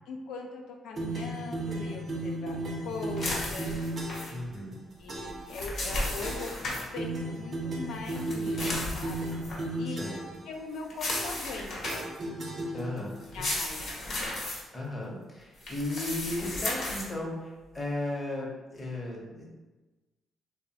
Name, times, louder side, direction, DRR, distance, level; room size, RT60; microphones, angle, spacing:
voice 1, 0.1-3.8 5.0-6.5 6.9-8.7 8.9-9.4 9.8-10.1 10.5-12.1 13.3-13.8, left 3 dB, 85° left, 2 dB, 0.4 m, -40 dB
sound 1, 1.0-4.4 5.1-5.5 6.2-6.6 7.0-10.4 11.1-11.5 11.8-13.2, right 1 dB, 45° right, 0.5 m, -35 dB
sound 2, 3.2-4.3 5.3-6.8 8.0-9.6 10.9-12.2 13.2-14.6 15.6-17.1, left 1 dB, 65° left, 0.8 m, -34 dB
voice 2, 4.3-4.8 9.8-10.2 12.7-13.4 14.1-14.3 14.7-19.5, left 2 dB, 25° left, -2 dB, 0.7 m, -36 dB
3.0 x 2.0 x 2.7 m, 1.2 s
cardioid pair, 90°, 0 cm